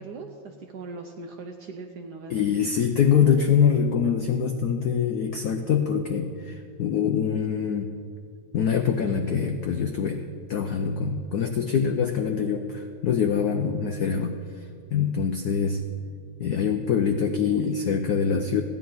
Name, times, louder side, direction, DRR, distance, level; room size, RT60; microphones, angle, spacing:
voice 1, 0.0-2.4, right 3 dB, 75° right, 4 dB, 1.0 m, -40 dB
voice 2, 2.3-7.9 8.5-10.2 10.5-14.4 14.9-15.8 16.4-18.6, left 7 dB, 90° left, 6 dB, 0.8 m, -24 dB
15.5 x 10.0 x 3.9 m, 2.3 s
omnidirectional pair, 2.4 m